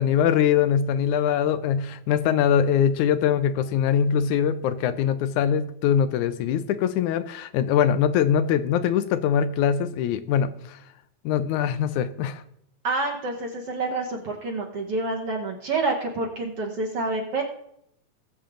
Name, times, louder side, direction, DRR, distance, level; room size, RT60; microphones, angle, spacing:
voice 1, 0.0-10.8 11.2-12.4, left 8 dB, 80° left, 12 dB, 2.2 m, -22 dB
voice 2, 12.8-17.4, right 3 dB, 55° right, 0 dB, 2.2 m, -28 dB
19.5 x 7.4 x 3.8 m, 0.73 s
omnidirectional pair, 3.5 m